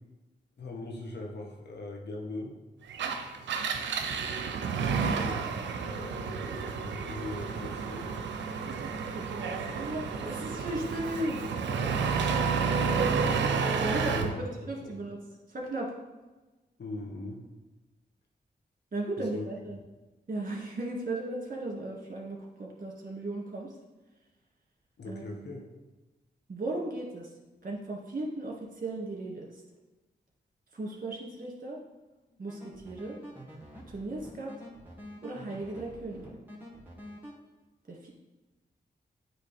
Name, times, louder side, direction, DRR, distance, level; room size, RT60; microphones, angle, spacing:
voice 1, 0.6-2.6 5.1-8.1 11.6-12.5 13.9-14.4 16.8-17.4 19.3-19.4 25.0-25.7, left 2 dB, 65° left, 0 dB, 1.3 m, -41 dB
Engine, 2.9-14.4, right 5 dB, 90° right, 0.5 m, -30 dB
voice 2, 9.0-11.4 12.9-15.2 15.5-15.9 18.9-19.8 20.3-23.8 25.1-25.5 26.5-27.3 27.6-29.6 30.7-31.8 32.4-33.2 33.9-34.5 35.2-36.4 37.9-38.1, right 2 dB, 50° right, -2 dB, 2.0 m, -36 dB
sound 1, 32.3-37.3, equal, 10° right, 2.2 m, -47 dB
8.7 x 3.2 x 4.2 m, 1.1 s
cardioid pair, 40°, 19 cm